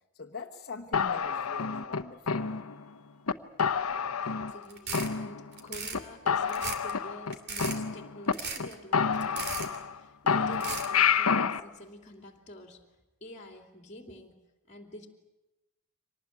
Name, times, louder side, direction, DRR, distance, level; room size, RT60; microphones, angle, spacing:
voice 1, 0.1-2.5, left 4 dB, 50° left, 1 dB, 1.4 m, -43 dB
sound 1, 0.9-2.9 3.3-3.4 3.6-4.6 4.9-5.6 5.9-6.0 6.3-8.3 8.6-8.7 8.9-10.0 10.3-11.6, left 6 dB, 85° left, 0.9 m, -28 dB
voice 2, 4.2-14.4 14.7-15.1, left 1 dB, 30° left, 4 dB, 2.9 m, -48 dB
sound 2, 4.7-5.1 5.5-6.0 6.5-6.9 7.3-7.8 8.3-8.7 9.2-9.8 10.5-10.9, right 5 dB, 50° right, 2.7 m, -36 dB
25.0 x 19.5 x 9.7 m, 1.0 s
head